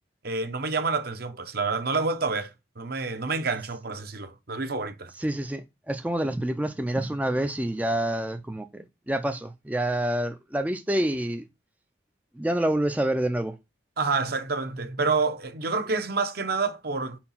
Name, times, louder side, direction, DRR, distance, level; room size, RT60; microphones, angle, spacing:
voice 1, 0.2-5.1 14.0-17.2, right 4 dB, 55° right, 0.9 m, -28 dB
voice 2, 5.2-11.4 12.4-13.6, right 1 dB, 10° right, 0.4 m, -27 dB
4.8 x 4.4 x 5.6 m
head